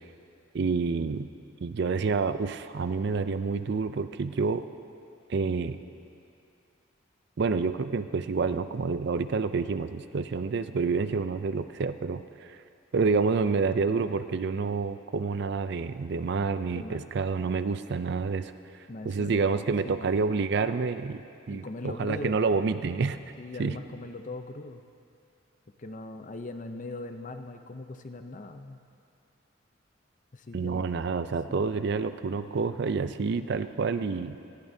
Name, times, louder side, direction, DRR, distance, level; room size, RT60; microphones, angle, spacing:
voice 1, 0.5-1.3 1.6-4.6 5.3-5.8 7.4-12.6 12.9-18.5 19.0-21.2 21.5-23.2 23.6-23.8 30.5-34.4, right 4 dB, 55° right, 11 dB, 0.4 m, -28 dB
voice 2, 16.7-17.1 18.9-19.4 19.8-20.1 21.5-22.4 23.4-24.8 25.8-28.8 30.3-30.9 31.5-31.7, left 2 dB, 40° left, 8 dB, 0.6 m, -40 dB
19.0 x 14.5 x 2.7 m, 2.5 s
head